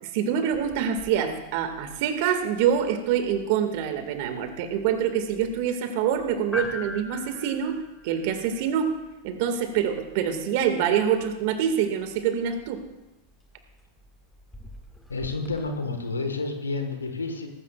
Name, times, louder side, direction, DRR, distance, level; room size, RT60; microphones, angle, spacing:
voice 1, 0.0-8.9 9.2-12.8, right 8 dB, 55° right, 6 dB, 2.0 m, -25 dB
sound 1, 0.5-15.7, left 2 dB, 10° left, 1.9 m, -44 dB
voice 2, 15.1-17.5, left 3 dB, 90° left, 6 dB, 1.6 m, -30 dB
18.0 x 15.5 x 2.5 m, 1.0 s
hypercardioid pair, 95°, 0 cm